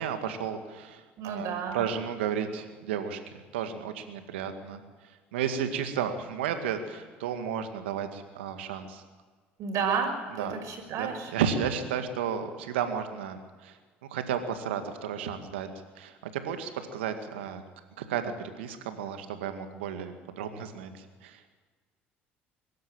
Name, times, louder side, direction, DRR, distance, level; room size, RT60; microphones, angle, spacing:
voice 1, 0.0-4.8 5.3-9.0 10.4-10.6 11.0-13.8 14.1-15.7 16.0-17.6 18.0-21.5, right 8 dB, 80° right, 7 dB, 2.0 m, -33 dB
voice 2, 1.2-1.8 9.6-11.3, right 6 dB, 60° right, 3 dB, 5.6 m, -31 dB
23.5 x 13.0 x 8.9 m, 1.4 s
hypercardioid pair, 65°, 6 cm